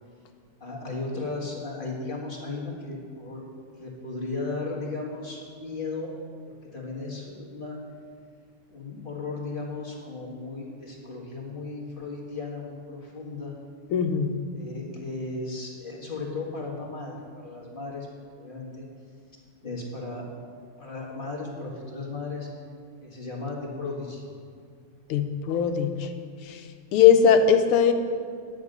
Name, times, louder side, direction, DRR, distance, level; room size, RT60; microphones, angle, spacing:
voice 1, 0.6-3.5 3.7-6.1 6.6-7.8 8.7-13.5 14.5-18.1 18.4-18.8 19.6-20.3 20.8-22.5 23.0-24.2, left 3 dB, 25° left, -3 dB, 1.6 m, -35 dB
voice 2, 13.9-14.3 25.1-26.1 26.5-26.6 26.9-27.9, left 7 dB, 90° left, 7 dB, 1.7 m, -20 dB
9.7 x 9.4 x 5.3 m, 2.2 s
omnidirectional pair, 2.3 m